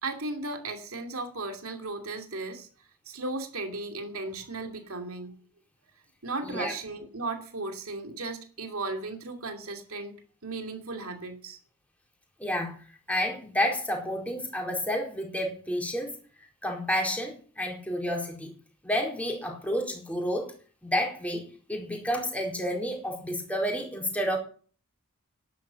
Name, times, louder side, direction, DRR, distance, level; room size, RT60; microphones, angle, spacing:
voice 1, 0.0-2.7 3.1-5.3 6.2-10.1 10.4-11.6, right 3 dB, 70° right, 5 dB, 2.7 m, -36 dB
voice 2, 12.4-12.8 13.1-16.2 16.6-18.5 18.8-20.5 20.8-21.4 21.7-24.4, equal, 5° left, 0 dB, 4.3 m, -30 dB
11.5 x 10.5 x 6.9 m, 0.42 s
head